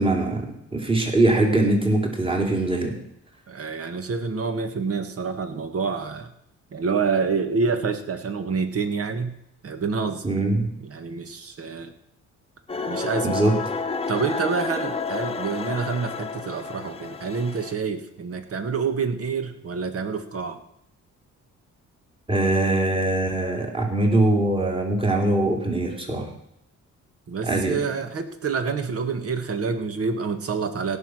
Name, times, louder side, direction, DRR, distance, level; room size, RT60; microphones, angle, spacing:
voice 1, 0.0-2.9 10.2-10.7 13.2-13.6 22.3-26.3 27.5-27.8, right 2 dB, 20° right, 1 dB, 3.0 m, -22 dB
voice 2, 3.5-6.3 6.7-9.3 9.6-10.2 10.8-11.9 12.9-13.4 14.1-20.6 27.3-31.0, right 5 dB, 50° right, 8 dB, 1.8 m, -27 dB
sound 1, 12.7-17.7, left 4 dB, 20° left, 1.1 m, -30 dB
17.0 x 6.0 x 6.3 m, 0.76 s
cardioid pair, 90°, 30 cm